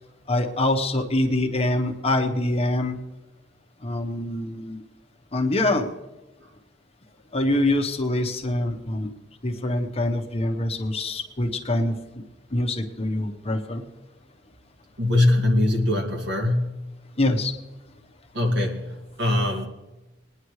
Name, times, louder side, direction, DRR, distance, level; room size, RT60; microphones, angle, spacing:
voice 1, 0.3-3.0 3.8-4.8 5.3-5.9 7.3-9.1 9.4-12.0 12.5-13.8 17.2-17.5, left 1 dB, 35° left, 3 dB, 1.1 m, -24 dB
voice 2, 15.0-16.9 18.3-19.7, left 1 dB, 65° right, 1 dB, 2.3 m, -22 dB
21.5 x 10.0 x 3.2 m, 1.1 s
head